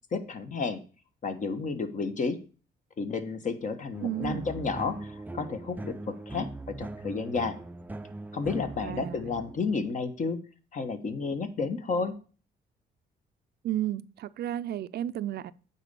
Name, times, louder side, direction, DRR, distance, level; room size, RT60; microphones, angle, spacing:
voice 1, 0.1-0.8 1.2-2.4 3.0-6.5 6.8-7.6 8.3-10.4 10.7-12.1, left 4 dB, 45° left, 1.2 m, -31 dB
sound 1, 3.9-9.9, right 2 dB, 10° right, 0.5 m, -40 dB
voice 2, 4.0-4.5 8.8-9.3 13.6-15.5, right 12 dB, 65° right, 0.5 m, -33 dB
9.0 x 4.2 x 6.7 m
cardioid pair, 90°, 18 cm